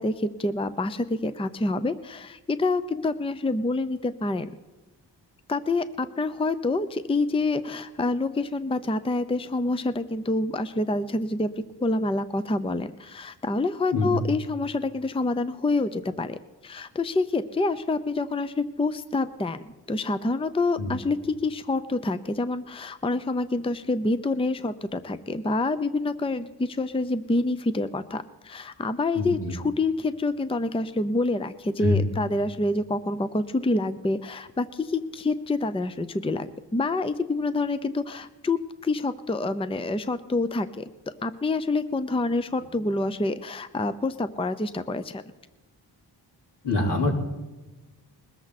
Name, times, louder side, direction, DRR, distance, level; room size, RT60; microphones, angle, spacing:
voice 1, 0.0-4.5 5.5-40.9 41.2-45.2, left 2 dB, 15° left, 12 dB, 0.6 m, -27 dB
voice 2, 29.2-29.5 31.8-32.0 46.6-47.1, left 3 dB, 75° left, -2 dB, 4.2 m, -24 dB
21.0 x 14.0 x 4.2 m, 1.2 s
cardioid pair, 90°, 41 cm